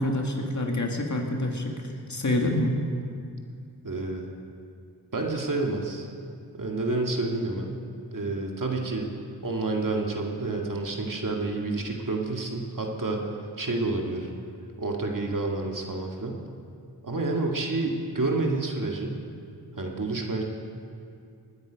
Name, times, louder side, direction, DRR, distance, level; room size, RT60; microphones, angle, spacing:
voice 1, 0.0-1.7 2.1-2.8, left 1 dB, 45° left, 1 dB, 2.1 m, -26 dB
voice 2, 3.8-4.3 5.1-6.1 6.6-7.8 8.1-9.1 9.4-13.3 13.6-14.3 14.8-16.4 17.0-19.2 19.8-20.4, right 2 dB, 50° right, 1 dB, 2.1 m, -29 dB
20.0 x 9.5 x 5.2 m, 2.4 s
cardioid pair, 45°, 41 cm